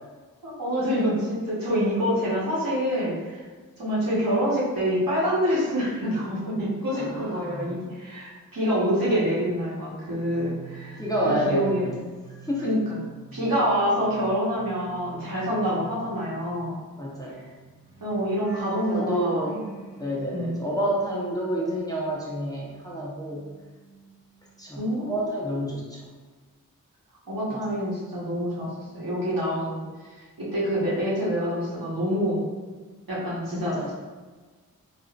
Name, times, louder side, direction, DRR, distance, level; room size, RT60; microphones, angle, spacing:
voice 1, 0.4-3.4 3.8-11.9 12.6-13.0 13.3-16.8 18.0-19.6 20.3-20.5 24.8-25.4 27.3-29.8 30.1-32.4 33.1-33.9, equal, 70° right, -8 dB, 1.2 m, -26 dB
voice 2, 6.9-7.7 11.0-11.9 12.5-12.7 17.0-17.4 18.9-19.6 20.0-23.5 24.6-26.0 33.5-33.9, equal, 10° left, -5 dB, 0.6 m, -29 dB
sound 1, 9.9-22.2 22.5-24.6 24.9-25.2, right 8 dB, 10° right, 1.0 m, -46 dB
3.5 x 2.4 x 2.4 m, 1.4 s
wide cardioid pair, 45°, 36 cm